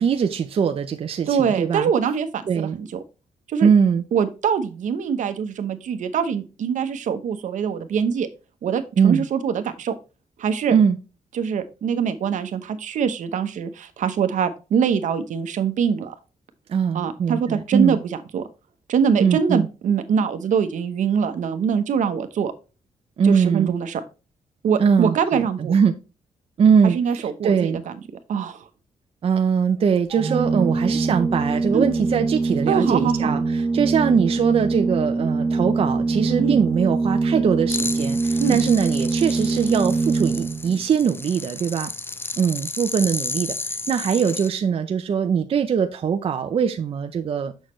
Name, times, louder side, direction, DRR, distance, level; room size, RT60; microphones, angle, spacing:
voice 1, 0.0-1.9 2.5-2.8 3.6-4.0 9.0-9.2 10.7-11.0 16.7-18.0 19.2-19.7 23.2-23.7 24.8-25.9 26.6-27.8 29.2-41.9 42.4-47.5, right 7 dB, 50° right, 0.6 m, -21 dB
voice 2, 1.3-2.9 3.5-3.7 4.1-8.3 8.6-9.9 10.4-10.8 11.3-16.1 16.9-18.4 18.9-22.5 23.2-24.0 24.6-25.7 26.8-27.9 28.3-28.7 31.7-31.8 32.7-33.3 36.4-36.6 38.4-38.6, right 7 dB, 75° right, 1.0 m, -23 dB
Organ, 30.1-40.8, right 3 dB, 25° right, 1.1 m, -23 dB
sound 1, 37.7-44.5, left 3 dB, 20° left, 0.4 m, -32 dB
6.5 x 6.3 x 3.1 m
wide cardioid pair, 130°, 13 cm